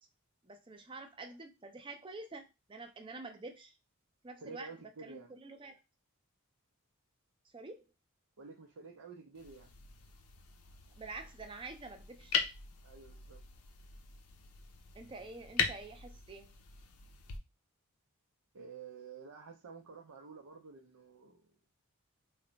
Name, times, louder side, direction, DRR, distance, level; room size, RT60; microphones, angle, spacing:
voice 1, 0.4-3.7 4.2-4.7 5.0-5.8 7.5-7.8 11.0-12.4 14.9-16.5, right 3 dB, 20° right, 0.4 m, -47 dB
voice 2, 4.4-5.3 8.4-9.7 12.8-13.4 18.5-21.5, right 4 dB, 85° right, 0.6 m, -50 dB
sound 1, 9.3-17.4, left 6 dB, 80° left, 0.6 m, -40 dB
3.2 x 2.1 x 3.9 m
head